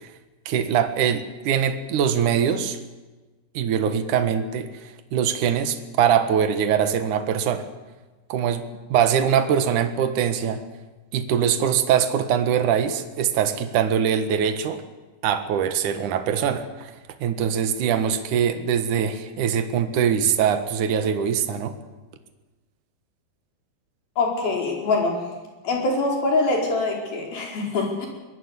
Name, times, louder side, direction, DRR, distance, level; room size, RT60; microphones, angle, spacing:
voice 1, 0.5-2.8 3.5-7.7 8.3-10.6 11.1-14.8 15.2-16.9 17.2-21.8, right 8 dB, 65° right, 9 dB, 2.0 m, -22 dB
voice 2, 24.2-25.2 25.6-28.1, left 3 dB, 45° left, 1 dB, 6.5 m, -24 dB
23.0 x 19.5 x 8.3 m, 1.2 s
omnidirectional pair, 5.9 m